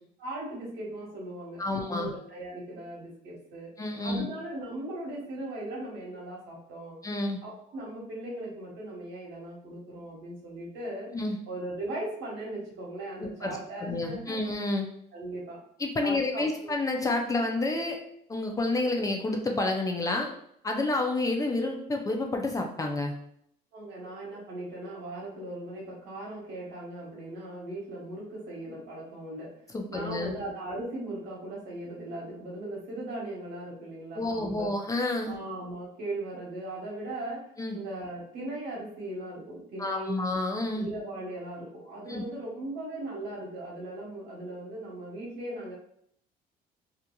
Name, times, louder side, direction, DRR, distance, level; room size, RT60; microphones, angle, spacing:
voice 1, 0.2-3.7 4.0-7.0 7.4-11.1 11.5-14.4 15.1-15.6 16.0-16.7 23.7-29.6 29.9-34.7 35.2-40.2 40.7-45.7, right 1 dB, 80° right, -3 dB, 1.1 m, -38 dB
voice 2, 1.6-2.1 3.8-4.3 7.0-7.4 11.1-11.4 13.4-14.9 15.8-18.0 18.3-20.3 20.6-23.1 29.7-30.3 34.2-35.4 37.6-37.8 39.8-40.9 42.1-42.2, left 2 dB, 20° left, 2 dB, 0.4 m, -29 dB
2.8 x 2.4 x 2.2 m, 0.69 s
cardioid pair, 110°, 17 cm